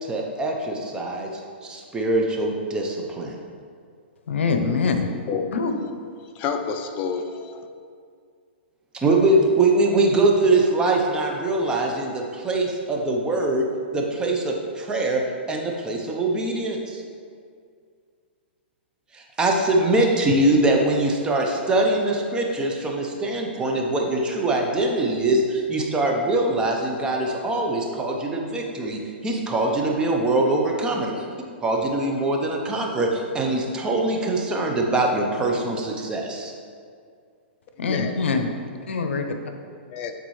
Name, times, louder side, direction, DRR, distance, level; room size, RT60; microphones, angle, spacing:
voice 1, 0.0-3.3 8.9-13.7 13.9-15.2 15.5-17.0 19.1-31.2 31.6-36.5, right 2 dB, 15° right, 0 dB, 0.7 m, -23 dB
voice 2, 4.3-5.1 5.5-5.7 37.8-38.5 38.9-39.2, left 4 dB, 85° left, 6 dB, 0.7 m, -23 dB
voice 3, 6.4-7.7 37.8-38.1 39.9-40.1, left 6 dB, 30° left, 5 dB, 0.5 m, -29 dB
9.0 x 4.0 x 3.1 m, 2.2 s
hypercardioid pair, 140°, 6 cm